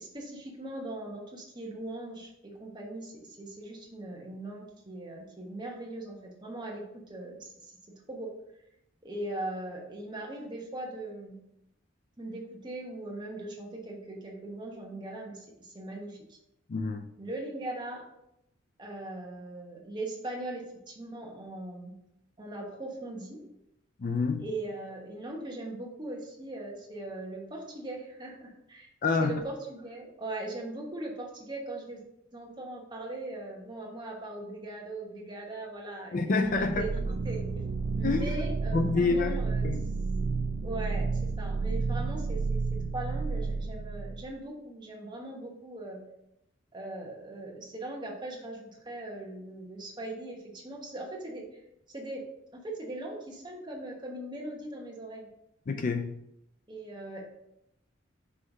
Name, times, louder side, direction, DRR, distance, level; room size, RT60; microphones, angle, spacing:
voice 1, 0.0-7.8 8.1-8.3 9.0-11.4 12.2-16.4 17.2-18.0 18.8-21.9 22.4-23.4 24.4-28.9 29.2-32.0 32.3-37.6 38.0-39.7 40.6-42.6 42.9-46.0 46.7-51.4 51.9-52.2 52.5-55.3 56.7-57.2, right 1 dB, 25° right, -1 dB, 1.2 m, -40 dB
voice 2, 16.7-17.1 24.0-24.4 29.0-29.4 36.1-36.8 38.0-38.2 38.7-39.4 39.6-39.8 55.7-56.2, left 3 dB, 40° left, 7 dB, 0.4 m, -27 dB
sound 1, 36.4-44.3, right 4 dB, 65° right, 0.4 m, -31 dB
5.6 x 3.2 x 5.3 m, 0.81 s
head